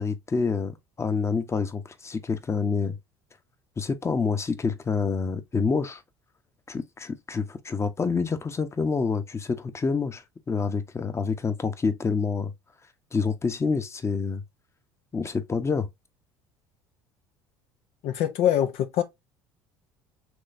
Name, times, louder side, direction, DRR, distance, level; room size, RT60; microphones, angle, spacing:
voice 1, 0.0-3.0 3.8-6.0 6.7-12.5 13.1-14.4 15.1-15.9, left 5 dB, 25° left, 0.9 m, -27 dB
voice 2, 18.0-19.0, left 10 dB, 65° left, 0.7 m, -24 dB
6.3 x 3.2 x 2.6 m
hypercardioid pair, 70°, 11 cm